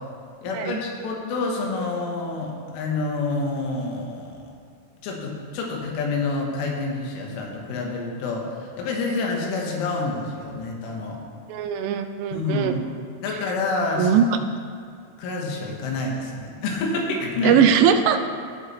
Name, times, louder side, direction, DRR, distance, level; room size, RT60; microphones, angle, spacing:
voice 1, 0.4-4.4 5.0-11.2 12.3-12.9 13.2-14.2 15.2-17.6, left 3 dB, 80° left, 0 dB, 3.8 m, -28 dB
voice 2, 11.5-12.7 14.0-14.2 17.4-18.3, right 8 dB, 85° right, 8 dB, 3.0 m, -20 dB
15.5 x 8.2 x 3.2 m, 2.3 s
omnidirectional pair, 5.7 m